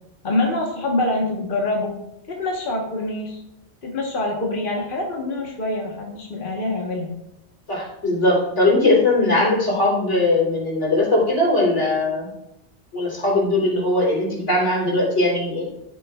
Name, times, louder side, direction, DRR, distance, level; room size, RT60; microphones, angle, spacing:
voice 1, 0.2-2.0 2.3-3.4 3.8-7.1, left 2 dB, 50° left, -1 dB, 1.4 m, -25 dB
voice 2, 7.7-12.3 12.9-15.6, left 2 dB, 85° left, -4 dB, 3.8 m, -20 dB
14.0 x 6.9 x 2.3 m, 0.82 s
omnidirectional pair, 1.2 m